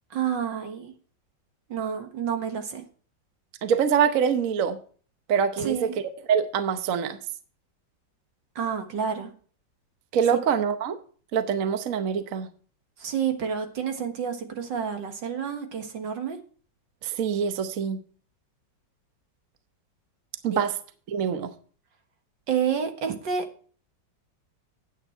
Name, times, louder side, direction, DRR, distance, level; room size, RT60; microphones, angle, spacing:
voice 1, 0.1-0.9 1.7-2.8 5.6-5.9 8.6-9.3 13.0-16.4 20.5-20.6 22.5-23.5, right 7 dB, 75° right, 2.2 m, -29 dB
voice 2, 3.6-4.8 5.3-5.9 6.3-7.2 10.1-11.0 11.3-12.5 17.0-18.0 20.4-20.7 21.1-21.5, right 7 dB, 55° right, 1.1 m, -24 dB
9.5 x 8.9 x 4.4 m
omnidirectional pair, 2.0 m